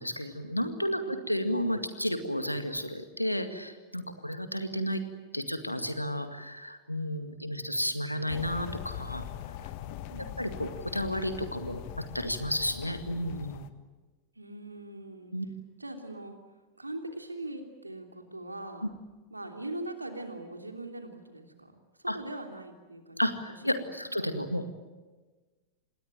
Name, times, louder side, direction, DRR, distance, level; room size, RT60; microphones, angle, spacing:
voice 1, 0.0-5.0 5.3-9.3 10.4-13.6 15.3-15.5 22.1-22.2 23.2-24.7, equal, 90° left, 9 dB, 2.0 m, -32 dB
voice 2, 0.9-1.3 10.1-10.5 14.3-15.3 15.8-16.4 16.8-18.9 19.3-21.7 22.0-23.6 24.2-24.3, right 2 dB, 85° right, 5 dB, 3.1 m, -41 dB
sound 1, 8.3-13.7, left 11 dB, 45° left, 1.5 m, -41 dB
26.5 x 20.5 x 9.1 m, 1.3 s
figure-of-eight pair, 90°, 0 cm